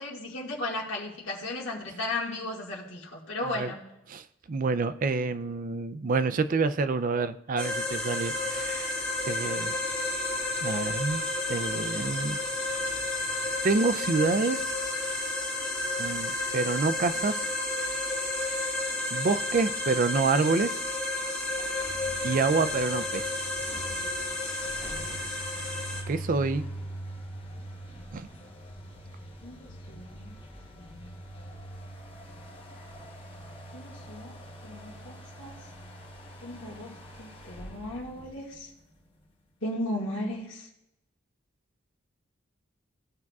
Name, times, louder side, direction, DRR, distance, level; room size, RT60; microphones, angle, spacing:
voice 1, 0.0-3.8 29.4-30.4 30.7-31.1 33.7-34.4 34.6-35.6 36.4-38.7 39.6-40.7, left 1 dB, 70° left, -3 dB, 1.8 m, -36 dB
voice 2, 4.1-8.9 9.3-9.8 10.6-11.2 11.5-12.4 13.6-14.6 16.0-17.5 19.1-20.7 22.2-23.3 26.1-26.6 28.1-28.3, right 4 dB, 40° right, 12 dB, 0.4 m, -27 dB
sound 1, 7.6-26.0, left 2 dB, 5° left, 1.7 m, -31 dB
sound 2, 21.5-39.0, right 1 dB, 25° left, 1.1 m, -43 dB
16.0 x 5.9 x 2.3 m, 0.89 s
head